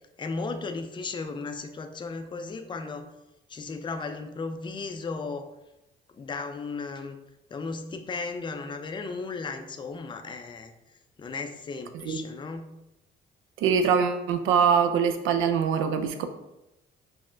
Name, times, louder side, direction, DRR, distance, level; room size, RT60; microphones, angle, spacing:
voice 1, 0.2-3.1 3.5-5.5 6.1-7.2 7.5-10.7 11.2-12.7, left 4 dB, 25° left, 7 dB, 0.4 m, -35 dB
voice 2, 13.6-16.3, right 6 dB, 90° right, 8 dB, 0.4 m, -23 dB
5.7 x 2.1 x 2.5 m, 0.92 s
cardioid pair, 90°, 20 cm